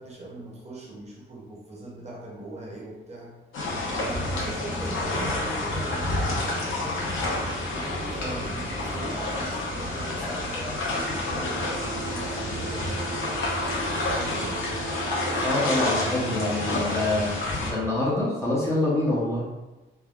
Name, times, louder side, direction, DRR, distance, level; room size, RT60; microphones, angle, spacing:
voice 1, 0.0-3.3 4.0-7.2 7.6-13.2 13.9-14.7, right 1 dB, 35° right, -3 dB, 0.7 m, -40 dB
sound 1, 3.5-17.7, left 2 dB, 80° left, 0.8 m, -29 dB
sound 2, 10.9-16.8, right 8 dB, 85° right, 0.8 m, -40 dB
voice 2, 15.4-19.4, left 2 dB, 15° left, -6 dB, 0.6 m, -26 dB
3.3 x 2.1 x 2.3 m, 1.1 s
cardioid pair, 140°, 20 cm